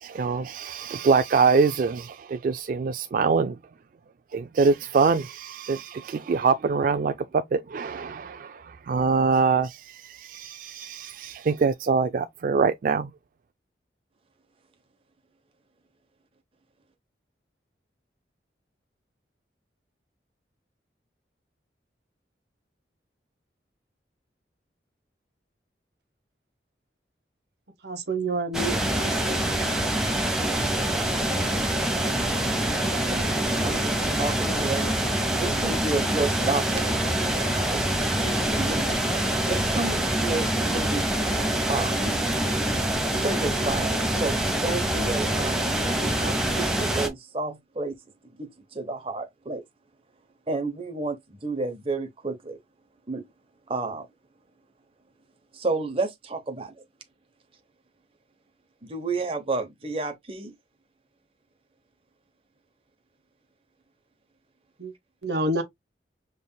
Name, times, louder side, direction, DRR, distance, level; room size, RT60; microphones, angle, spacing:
voice 1, 0.0-3.6 4.3-13.1, right 5 dB, 50° right, 0.3 m, -24 dB
voice 2, 27.8-29.6 64.8-64.9 65.2-65.6, right 2 dB, 70° right, 1.1 m, -29 dB
sound 1, 28.5-47.1, right 1 dB, 5° right, 0.9 m, -25 dB
voice 3, 33.0-34.9 35.4-39.0 39.5-41.1 41.7-41.9 43.1-47.9 48.4-49.6 50.5-52.6 53.1-53.2 53.7-54.1 55.5-56.7 58.8-60.5, right 3 dB, 30° right, 0.9 m, -31 dB
5.5 x 3.3 x 2.2 m
head